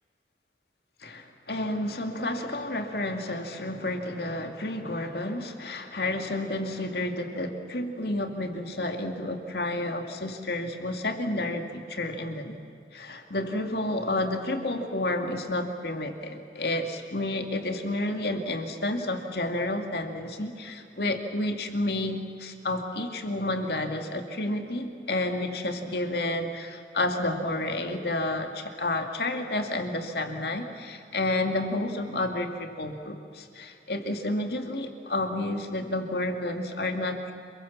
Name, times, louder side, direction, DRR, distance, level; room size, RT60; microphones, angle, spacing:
voice 1, 1.0-12.6 12.9-37.3, left 1 dB, 60° left, 5 dB, 2.3 m, -30 dB
28.0 x 22.5 x 7.3 m, 2.5 s
head